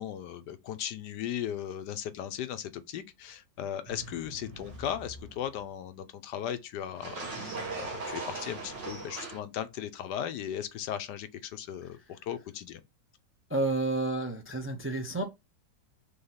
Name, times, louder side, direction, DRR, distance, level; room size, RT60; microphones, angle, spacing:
voice 1, 0.0-12.8, left 10 dB, 75° left, 1.2 m, -37 dB
sound 1, 3.9-5.6 7.0-9.4, right 3 dB, 80° right, 2.2 m, -40 dB
voice 2, 13.5-15.3, right 2 dB, 10° right, 0.7 m, -30 dB
5.6 x 3.4 x 5.6 m
omnidirectional pair, 1.9 m